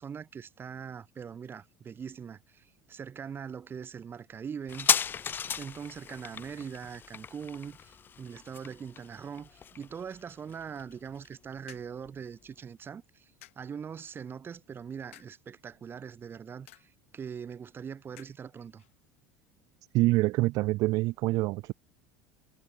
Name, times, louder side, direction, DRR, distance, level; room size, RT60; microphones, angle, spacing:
voice 1, 0.0-4.9 5.4-18.8, right 7 dB, 30° right, 1.7 m, -42 dB
sound 1, 4.7-11.8 12.1-12.2, left 7 dB, 30° left, 0.5 m, -34 dB
sound 2, 11.1-20.6, left 16 dB, 80° left, 2.8 m, -62 dB
voice 2, 19.9-21.7, right 20 dB, 55° right, 0.4 m, -26 dB
hypercardioid pair, 80°, 7 cm